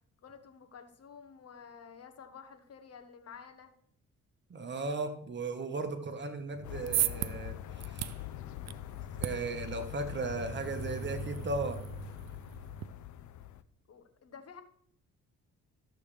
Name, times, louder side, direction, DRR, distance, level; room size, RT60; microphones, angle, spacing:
voice 1, 0.2-3.7 13.9-14.6, left 6 dB, 55° left, 8 dB, 1.4 m, -51 dB
voice 2, 4.5-7.6 7.9-8.1 9.2-11.8, right 3 dB, 35° right, 6 dB, 1.5 m, -36 dB
sound 1, 6.5-12.9, right 11 dB, 60° right, 0.6 m, -38 dB
sound 2, 6.6-13.6, left 13 dB, 75° left, 0.6 m, -43 dB
13.5 x 7.5 x 3.4 m, 0.66 s
cardioid pair, 90°, 30 cm